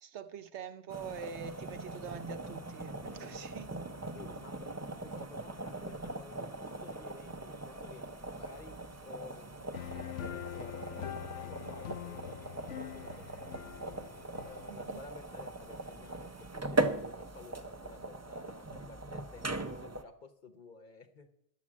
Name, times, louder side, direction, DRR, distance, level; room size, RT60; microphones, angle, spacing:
voice 1, 0.0-4.1 14.7-15.0, right 7 dB, 70° right, 1.0 m, -45 dB
sound 1, 0.9-20.0, right 2 dB, 20° right, 0.5 m, -40 dB
voice 2, 3.1-3.4 4.1-8.1 8.4-13.7 14.4-21.3, left 3 dB, 45° left, 1.0 m, -53 dB
sound 2, 9.7-14.9, left 11 dB, 75° left, 0.9 m, -43 dB
11.5 x 7.5 x 7.3 m
omnidirectional pair, 1.2 m